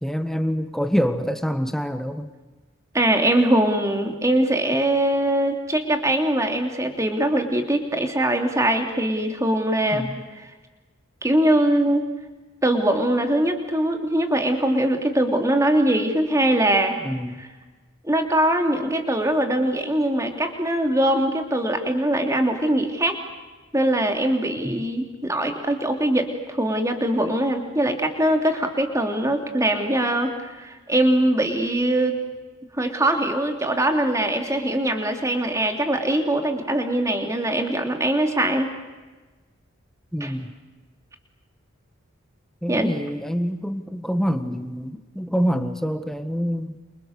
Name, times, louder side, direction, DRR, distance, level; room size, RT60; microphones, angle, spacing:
voice 1, 0.0-2.3 9.9-10.2 17.0-17.4 24.6-24.8 40.1-40.5 42.6-46.7, equal, ahead, 8 dB, 1.5 m, -26 dB
voice 2, 2.9-10.0 11.2-12.1 12.6-17.0 18.0-23.2 23.7-32.2 32.8-38.7 40.2-40.3 42.7-42.9, right 1 dB, 15° right, 4 dB, 3.1 m, -22 dB
29.0 x 29.0 x 6.7 m, 1.2 s
head